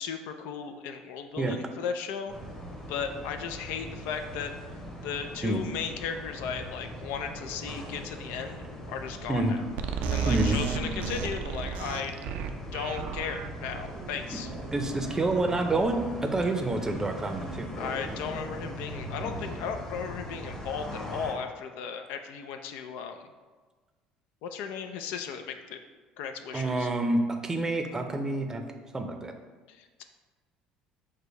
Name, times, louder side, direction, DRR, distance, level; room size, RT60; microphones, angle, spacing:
voice 1, 0.0-2.3 2.9-4.5 5.0-9.6 10.1-12.2 12.7-14.5 17.8-23.3 24.4-25.8 26.2-26.9 29.7-30.0, left 6 dB, 75° left, 7 dB, 0.4 m, -36 dB
sound 1, 2.3-21.3, equal, 20° left, 1.0 m, -40 dB
sound 2, 9.8-16.2, right 7 dB, 70° right, 0.3 m, -34 dB
voice 2, 10.3-10.6 14.7-17.7 26.5-28.6 28.9-29.3, right 2 dB, 20° right, 5 dB, 0.6 m, -28 dB
5.0 x 2.2 x 4.6 m, 1.3 s
supercardioid pair, 80°, 3 cm